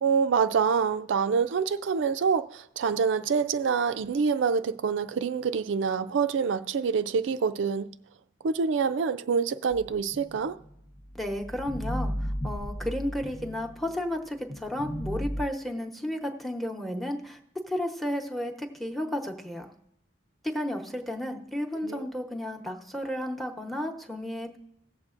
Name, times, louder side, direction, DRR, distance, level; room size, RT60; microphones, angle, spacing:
voice 1, 0.0-7.9 8.4-10.6 21.8-22.0, right 6 dB, 80° right, 0.4 m, -26 dB
sound 1, 9.7-14.0 14.5-15.5, equal, 35° left, 0.8 m, -35 dB
voice 2, 11.1-17.4 17.7-19.7 20.4-24.6, left 1 dB, ahead, 0.9 m, -33 dB
17.5 x 7.4 x 2.5 m
head